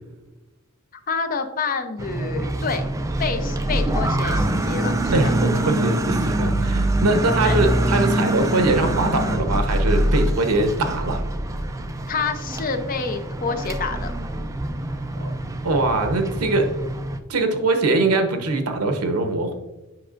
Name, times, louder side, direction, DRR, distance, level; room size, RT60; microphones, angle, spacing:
voice 1, 1.1-2.9 3.2-5.1 7.4-7.6 12.1-14.1, left 5 dB, 40° left, 8 dB, 0.5 m, -28 dB
sound 1, 2.0-17.2, right 1 dB, 15° right, 0.3 m, -24 dB
voice 2, 5.1-11.2 15.2-15.3 15.6-16.7 17.3-19.6, right 2 dB, 85° right, 6 dB, 0.9 m, -22 dB
7.8 x 5.5 x 2.5 m, 1.1 s
head